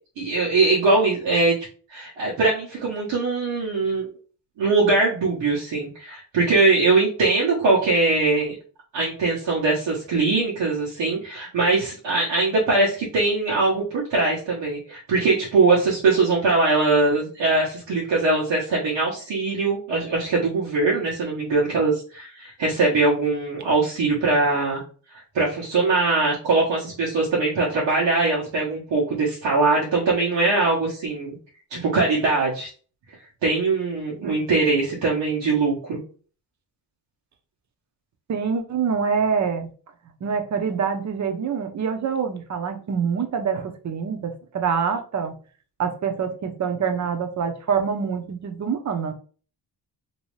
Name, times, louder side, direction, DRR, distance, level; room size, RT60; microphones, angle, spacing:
voice 1, 0.2-1.5 1.9-4.1 4.6-8.5 8.9-24.8 25.3-31.4 31.7-32.7 33.4-36.0, right 3 dB, 90° right, -6 dB, 1.1 m, -21 dB
voice 2, 38.3-39.7 40.2-45.3 45.8-49.1, right 6 dB, 40° right, 6 dB, 0.7 m, -25 dB
3.0 x 2.8 x 3.1 m, 0.40 s
cardioid pair, 85°, 43 cm